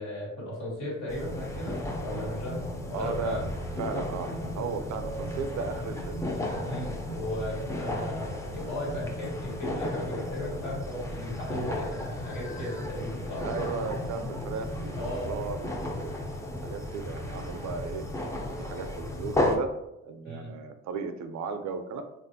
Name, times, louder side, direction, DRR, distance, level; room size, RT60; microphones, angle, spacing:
voice 1, 0.0-2.6 2.9-3.4 6.7-13.4 14.9-15.3 20.2-20.5, left 1 dB, 85° left, -5 dB, 1.5 m, -36 dB
sound 1, 1.1-19.6, left 1 dB, 10° left, 0.4 m, -34 dB
voice 2, 2.9-3.4 3.8-6.2 13.4-16.2 16.6-18.0 18.6-19.7 20.0-22.0, right 5 dB, 65° right, 8 dB, 0.4 m, -35 dB
3.2 x 2.4 x 2.6 m, 0.95 s
cardioid pair, 90°, 30 cm